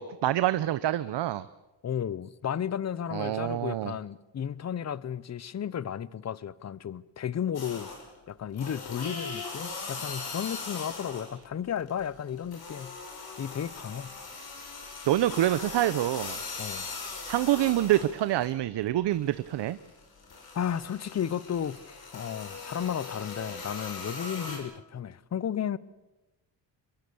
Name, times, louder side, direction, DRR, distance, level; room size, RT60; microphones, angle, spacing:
voice 1, 0.0-1.5 3.1-3.9 15.1-16.4 17.3-19.8, right 13 dB, 65° right, 0.8 m, -26 dB
voice 2, 1.8-7.9 8.3-13.0 13.4-14.2 16.6-16.9 20.5-25.8, left 9 dB, 35° left, 0.8 m, -33 dB
sound 1, 7.5-8.2 8.5-11.4 11.8-18.5 18.9-24.6, left 4 dB, 55° left, 6.3 m, -40 dB
24.5 x 22.5 x 7.0 m
cardioid pair, 115°, 44 cm